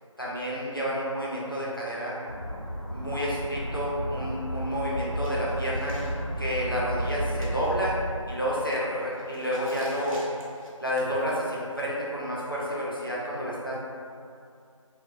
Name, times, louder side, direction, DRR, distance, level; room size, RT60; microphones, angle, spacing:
voice 1, 0.2-2.1 2.9-6.0 6.4-8.0 8.3-10.2 10.8-13.8, equal, 40° left, -6 dB, 0.5 m, -30 dB
sound 1, 2.3-8.0, equal, 50° right, 0.4 m, -32 dB
sound 2, 5.2-12.3, equal, 80° right, 0.7 m, -50 dB
2.8 x 2.1 x 2.5 m, 2.4 s
figure-of-eight pair, 180°, 17 cm